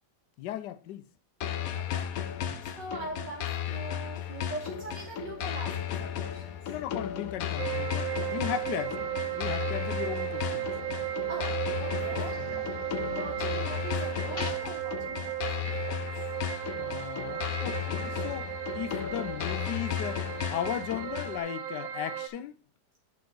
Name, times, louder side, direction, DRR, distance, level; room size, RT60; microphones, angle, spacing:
voice 1, 0.4-1.0 2.5-2.6 6.7-9.1 9.3-10.7 12.5-12.6 16.7-22.6, left 11 dB, 80° left, 1.3 m, -36 dB
sound 1, 1.4-21.4, left 9 dB, 65° left, 1.0 m, -35 dB
voice 2, 1.8-2.1 2.8-6.7 11.3-12.4 13.1-16.1, right 2 dB, 80° right, 3.3 m, -41 dB
sound 2, 7.5-14.5, left 3 dB, 35° left, 1.4 m, -46 dB
sound 3, 7.6-22.3, right 13 dB, 60° right, 1.0 m, -35 dB
8.5 x 5.7 x 3.9 m
omnidirectional pair, 1.9 m